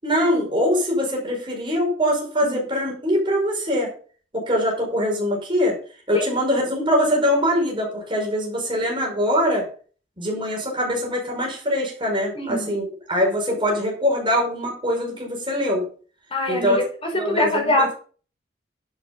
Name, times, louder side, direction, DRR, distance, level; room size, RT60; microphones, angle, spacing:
voice 1, 0.0-3.9 4.3-5.8 6.1-9.7 10.2-15.8 16.5-16.8 17.1-17.9, equal, 25° right, -1 dB, 5.3 m, -23 dB
voice 2, 12.3-12.7 16.3-17.9, left 1 dB, 30° left, 1 dB, 5.0 m, -23 dB
11.5 x 8.1 x 5.5 m, 0.40 s
head